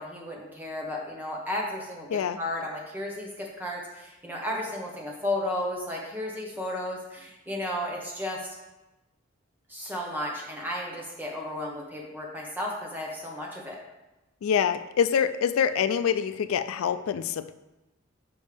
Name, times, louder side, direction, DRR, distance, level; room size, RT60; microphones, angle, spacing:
voice 1, 0.0-8.5 9.7-13.8, left 1 dB, 10° right, -2 dB, 1.2 m, -33 dB
voice 2, 14.4-17.5, left 7 dB, 80° left, 12 dB, 0.3 m, -25 dB
6.8 x 5.2 x 3.4 m, 1.0 s
head